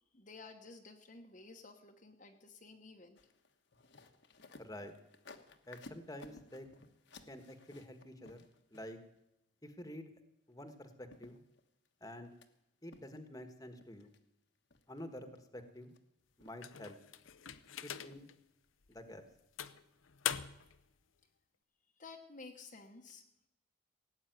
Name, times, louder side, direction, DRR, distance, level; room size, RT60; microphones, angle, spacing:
voice 1, 0.1-3.2 22.0-23.2, left 3 dB, 40° left, 2 dB, 1.1 m, -53 dB
sound 1, 3.2-9.2 10.7-10.8 11.1-12.5 12.9-13.5 13.8-14.2 14.7-15.0 15.3-16.0 16.4-16.9 17.2-17.7 18.1-18.3 18.6-18.7, left 3 dB, 60° left, 1.3 m, -58 dB
voice 2, 4.6-4.9 5.7-6.7 7.3-8.4 8.7-9.0 9.6-10.1 10.5-11.4 12.0-12.3 12.8-14.1 14.9-15.9 16.4-17.0 17.8-18.3 18.9-19.2, left 1 dB, 15° left, 8 dB, 1.4 m, -49 dB
sound 2, 16.6-18.3 18.9-19.0 19.6-20.8, left 9 dB, 80° left, 0.8 m, -42 dB
17.5 x 8.7 x 9.3 m, 0.84 s
head